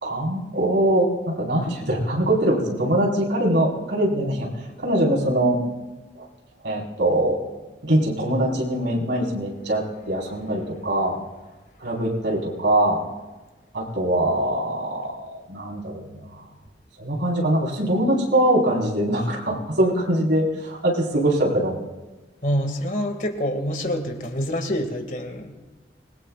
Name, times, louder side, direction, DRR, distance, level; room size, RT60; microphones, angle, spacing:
voice 1, 0.0-4.5 4.8-5.6 6.1-6.2 6.6-7.4 7.8-11.2 11.8-13.0 13.7-16.2 17.0-21.8, right 1 dB, 90° right, -2 dB, 4.6 m, -22 dB
voice 2, 22.4-25.5, equal, 45° left, 5 dB, 2.1 m, -26 dB
26.0 x 21.5 x 2.5 m, 1.2 s
head